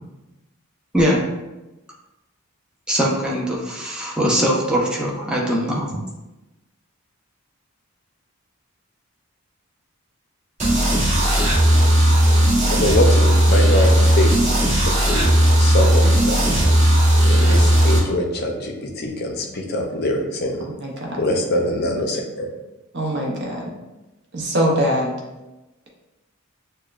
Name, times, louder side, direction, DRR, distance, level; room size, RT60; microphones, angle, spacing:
voice 1, 2.9-6.0, equal, 5° right, -4 dB, 0.5 m, -21 dB
sound 1, 10.6-18.0, right 1 dB, 30° right, 1.4 m, -16 dB
voice 2, 12.7-14.3 14.8-15.3 15.6-16.4 17.2-20.7 21.2-22.5, left 1 dB, 45° left, 2 dB, 0.5 m, -23 dB
voice 3, 20.8-21.2 22.9-23.7 24.3-25.1, equal, 50° right, -1 dB, 0.8 m, -22 dB
6.5 x 2.2 x 2.4 m, 1.0 s
head